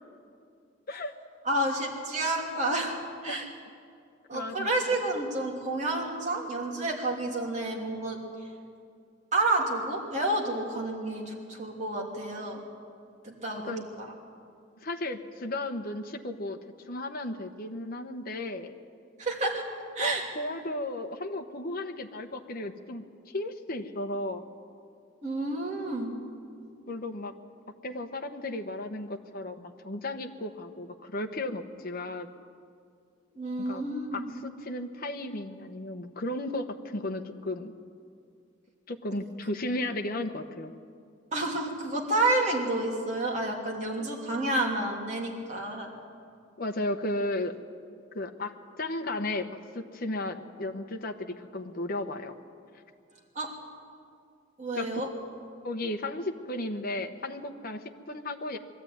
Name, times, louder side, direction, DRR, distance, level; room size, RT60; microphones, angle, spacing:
voice 1, 1.4-2.9 3.2-3.5 4.3-8.2 9.3-12.6 13.2-14.1 19.2-19.6 19.9-20.2 25.2-26.1 33.3-34.3 41.3-45.9 53.3-53.5 54.6-55.1, right 2 dB, 35° right, -1 dB, 3.0 m, -30 dB
voice 2, 4.3-4.7 13.5-13.8 14.8-16.6 16.9-18.7 20.0-24.4 26.9-27.3 27.8-32.3 33.6-33.8 34.1-37.7 38.9-40.7 46.6-47.5 48.1-49.5 49.7-52.4 54.7-55.0 55.6-58.6, left 1 dB, 50° left, 5 dB, 1.0 m, -34 dB
22.0 x 13.0 x 9.4 m, 2.4 s
head